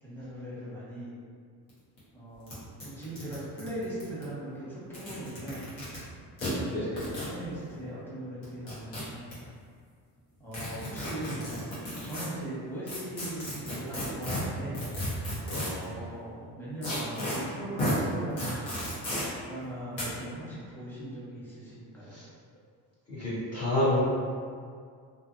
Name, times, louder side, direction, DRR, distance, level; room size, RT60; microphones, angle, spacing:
voice 1, 0.0-1.1 2.1-5.6 6.5-9.3 10.4-11.4 11.9-14.8 15.8-18.7 19.4-22.2, right 1 dB, 5° left, -9 dB, 1.1 m, -39 dB
sound 1, 1.7-1.8 2.0-2.1 2.5-2.6 2.8-4.2 4.8-6.0 6.4-6.5 7.0-7.3 8.4-9.3 10.5-12.3 12.9-15.8 16.8-17.4 17.8-18.0 18.4-19.2 20.0-20.1, left 1 dB, 80° left, 1.2 m, -33 dB
voice 2, 15.4-16.1 22.0-22.3 23.1-24.0, left 1 dB, 35° left, -10 dB, 0.9 m, -30 dB
2.5 x 2.5 x 2.6 m, 2.1 s
supercardioid pair, 70°, 45 cm